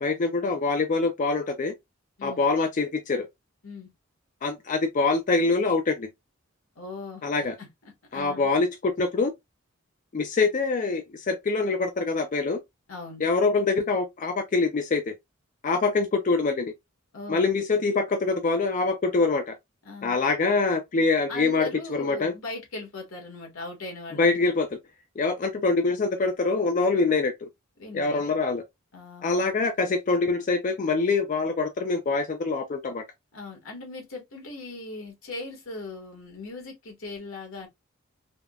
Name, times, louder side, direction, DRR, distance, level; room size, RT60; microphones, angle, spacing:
voice 1, 0.0-1.7 2.2-3.3 4.4-6.1 7.2-7.5 8.1-9.3 10.1-12.6 13.2-15.1 15.6-16.7 17.3-19.6 20.0-22.3 24.2-24.7 25.2-27.5 27.9-28.6 29.2-33.0, left 3 dB, 40° left, 0.4 m, -24 dB
voice 2, 6.7-7.2 7.6-8.5 12.9-13.3 17.1-17.5 19.8-20.2 21.3-24.5 27.8-28.4 28.9-29.5 33.3-37.7, left 3 dB, 85° left, 1.3 m, -39 dB
3.4 x 2.0 x 2.3 m
head